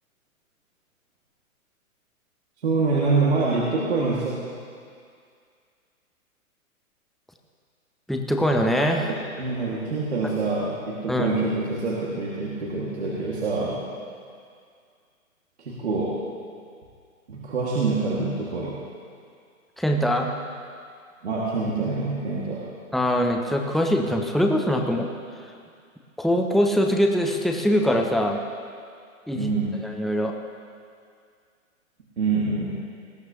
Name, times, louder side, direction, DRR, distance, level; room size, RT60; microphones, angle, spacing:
voice 1, 2.6-4.4 9.1-13.8 15.6-16.2 17.3-18.8 21.2-22.7 29.3-29.8 32.2-32.7, right 3 dB, 50° right, -6 dB, 1.9 m, -25 dB
voice 2, 8.1-9.1 11.1-11.4 19.8-20.3 22.9-25.1 26.2-28.4 29.3-29.5 29.8-30.3, equal, ahead, 2 dB, 0.3 m, -22 dB
19.5 x 12.5 x 2.8 m, 2.2 s
hypercardioid pair, 180°, 42 cm